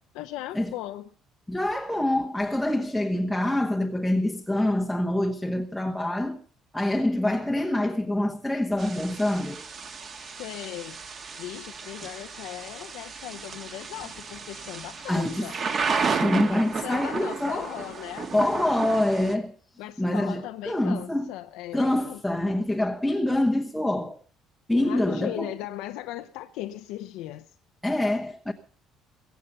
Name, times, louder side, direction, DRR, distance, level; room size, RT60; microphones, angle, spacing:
voice 1, 0.1-1.1 10.4-11.0 11.4-15.6 16.7-19.0 19.8-22.2 24.7-27.6, left 14 dB, 90° left, 0.9 m, -38 dB
voice 2, 1.5-6.4 6.7-9.7 15.1-15.5 16.2-17.7 18.3-19.5 20.0-21.3 21.7-24.2 24.7-25.5 27.8-28.5, left 1 dB, ahead, 1.0 m, -25 dB
Thunder / Rain, 8.8-19.4, right 5 dB, 30° right, 1.8 m, -33 dB
23.0 x 8.3 x 5.5 m
cardioid pair, 165°, 0 cm